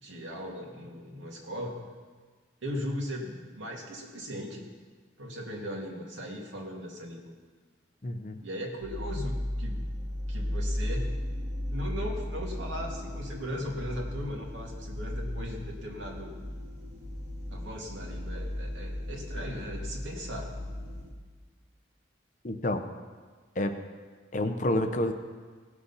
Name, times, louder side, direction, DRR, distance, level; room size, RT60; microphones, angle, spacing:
voice 1, 0.0-1.8 2.6-4.7 5.2-7.3 8.4-9.8 10.3-11.2 11.7-16.3 17.5-20.5, equal, 85° right, 0 dB, 2.1 m, -38 dB
voice 2, 8.0-8.4 22.4-22.8 23.6-23.7 24.3-25.1, left 1 dB, 40° left, 7 dB, 0.7 m, -28 dB
sound 1, 8.8-21.1, left 1 dB, 65° right, 2.4 m, -35 dB
17.0 x 6.3 x 5.6 m, 1.5 s
head